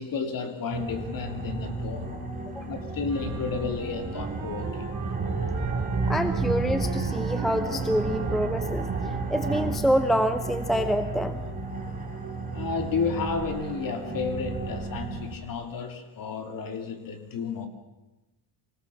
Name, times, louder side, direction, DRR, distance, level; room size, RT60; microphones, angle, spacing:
voice 1, 0.0-2.2 2.7-4.9 12.5-17.7, left 5 dB, 40° left, 7 dB, 2.9 m, -32 dB
sound 1, 0.7-15.3, right 4 dB, 15° right, 4.3 m, -32 dB
sound 2, 3.1-8.8, right 6 dB, 35° right, 3.0 m, -41 dB
voice 2, 6.1-8.9 9.3-11.4, equal, ahead, 10 dB, 0.7 m, -26 dB
24.5 x 17.5 x 7.2 m, 1.0 s
cardioid pair, 140°, 49 cm